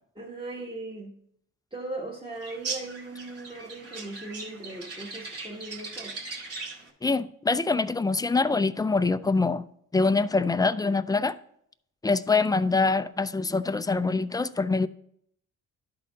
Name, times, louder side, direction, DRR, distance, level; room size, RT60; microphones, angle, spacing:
voice 1, 0.2-1.1 1.7-6.2, right 2 dB, 15° right, 1.2 m, -38 dB
sound 1, 2.4-6.9, right 4 dB, 50° right, 2.1 m, -39 dB
voice 2, 7.0-9.6 9.9-11.3 12.0-14.9, left 3 dB, 15° left, 0.3 m, -24 dB
11.5 x 4.2 x 3.9 m
cardioid pair, 90°, 30 cm